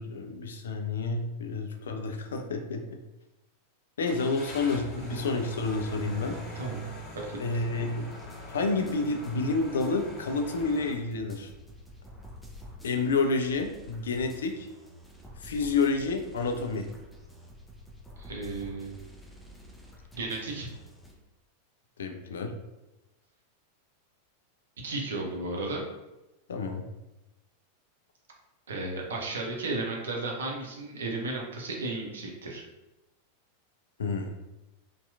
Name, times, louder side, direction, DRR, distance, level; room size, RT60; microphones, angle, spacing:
voice 1, 0.0-3.0 4.0-6.4 7.4-8.1 8.5-11.5 12.8-14.7 15.4-16.9 22.0-22.5 26.5-26.8 34.0-34.3, left 3 dB, 65° left, 5 dB, 0.3 m, -29 dB
Car / Engine starting, 4.0-10.9, equal, 30° left, 1.2 m, -42 dB
voice 2, 6.5-6.9 7.1-7.6 18.2-19.0 20.1-20.7 24.8-25.8 28.7-32.6, right 2 dB, 65° right, -1 dB, 0.6 m, -34 dB
sound 1, 8.1-21.1, left 1 dB, 5° left, 0.6 m, -49 dB
2.8 x 2.3 x 2.3 m, 1.0 s
figure-of-eight pair, 90°, 0 cm